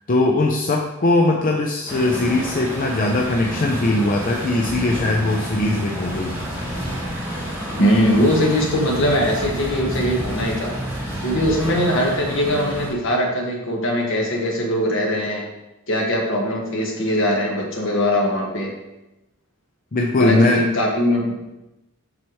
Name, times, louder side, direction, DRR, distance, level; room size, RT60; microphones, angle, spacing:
voice 1, 0.0-6.3 19.9-20.6, left 2 dB, 40° left, 0 dB, 0.5 m, -20 dB
Truck, 1.9-12.9, equal, 15° right, 2.2 m, -29 dB
voice 2, 7.8-10.7 11.2-15.4 15.9-18.7 20.2-21.4, equal, 60° left, -1 dB, 1.5 m, -21 dB
7.6 x 5.7 x 3.1 m, 0.99 s
head